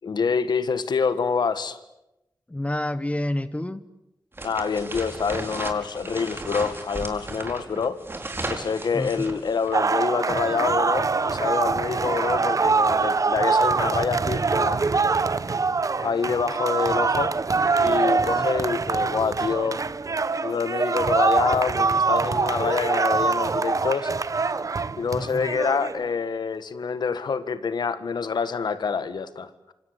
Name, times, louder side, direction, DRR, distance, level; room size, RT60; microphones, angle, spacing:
voice 1, 0.0-1.8 4.4-8.0 8.5-14.8 16.0-17.3 17.8-19.8 20.4-24.1 25.0-29.7, left 5 dB, 90° left, 13 dB, 1.7 m, -26 dB
voice 2, 2.5-3.8 8.9-9.1 18.3-18.8 25.1-25.5, left 1 dB, 20° left, 13 dB, 1.3 m, -29 dB
sound 1, 4.3-9.8, right 2 dB, 30° right, 4.2 m, -35 dB
sound 2, 9.7-26.0, right 4 dB, 50° right, 1.0 m, -24 dB
27.0 x 26.0 x 8.3 m, 0.91 s
wide cardioid pair, 80°, 7 cm